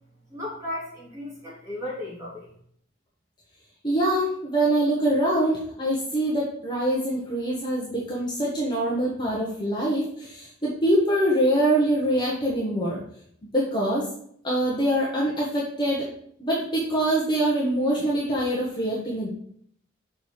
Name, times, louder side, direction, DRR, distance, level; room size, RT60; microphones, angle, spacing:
voice 1, 0.3-2.5, left 1 dB, 15° right, -7 dB, 3.1 m, -35 dB
voice 2, 3.8-13.0 13.5-14.1 14.4-16.0 16.4-19.3, right 1 dB, 20° left, -5 dB, 1.4 m, -24 dB
6.4 x 5.3 x 4.9 m, 0.64 s
head